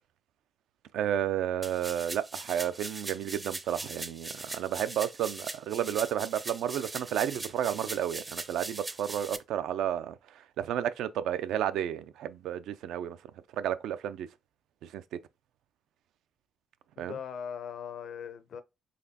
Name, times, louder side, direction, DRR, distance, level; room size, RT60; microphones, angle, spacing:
voice 1, 0.9-10.1 10.6-13.2 13.6-14.3 14.8-15.0 17.0-17.2, right 10 dB, 85° right, 0.3 m, -32 dB
sound 1, 1.6-9.4, right 2 dB, 20° right, 0.4 m, -40 dB
voice 2, 17.0-18.6, left 7 dB, 60° left, 0.5 m, -40 dB
4.0 x 3.0 x 2.8 m
cardioid pair, 90°, 0 cm